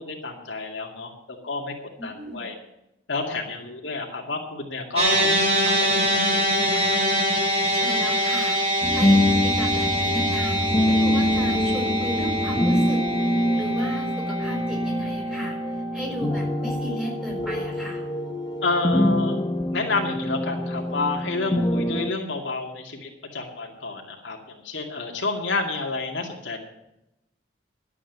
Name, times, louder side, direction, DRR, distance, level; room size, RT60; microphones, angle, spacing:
voice 1, 0.0-1.7 2.0-2.5 3.1-7.0 18.6-19.4 19.7-26.6, left 3 dB, 85° left, 1 dB, 2.3 m, -30 dB
voice 2, 2.0-2.5 7.7-13.0 13.5-15.6 15.9-18.0, equal, 5° right, -1 dB, 4.8 m, -35 dB
sound 1, 5.0-17.4, equal, 35° right, 5.0 m, -25 dB
sound 2, 8.8-22.1, left 1 dB, 25° left, 0.7 m, -25 dB
11.5 x 8.4 x 8.0 m, 0.86 s
head